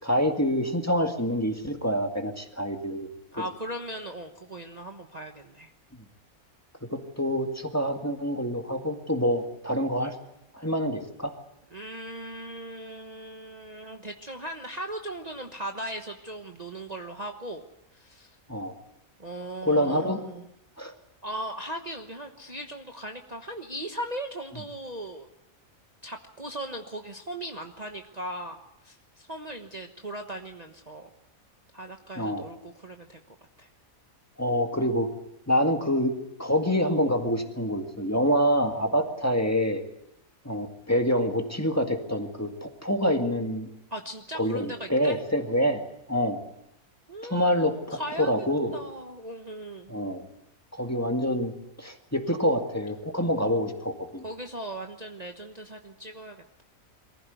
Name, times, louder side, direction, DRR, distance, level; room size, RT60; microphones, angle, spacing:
voice 1, 0.0-3.1 6.9-10.2 10.5-11.3 18.5-18.7 19.6-20.3 20.8-20.9 32.2-32.4 34.4-35.1 35.5-36.1 36.4-39.8 40.4-43.7 44.3-45.8 46.1-46.4 47.2-48.8 49.9-50.3 50.7-51.5 51.8-54.2, equal, 10° left, 4 dB, 2.0 m, -26 dB
voice 2, 3.3-5.7 11.7-17.7 17.9-18.4 19.2-20.4 21.2-25.3 26.0-28.6 28.8-31.1 31.7-33.2 33.6-33.7 43.9-45.2 47.1-48.3 48.7-49.9 54.2-56.6, right 1 dB, 30° right, 3 dB, 1.3 m, -38 dB
23.5 x 15.5 x 9.4 m, 0.84 s
omnidirectional pair, 1.4 m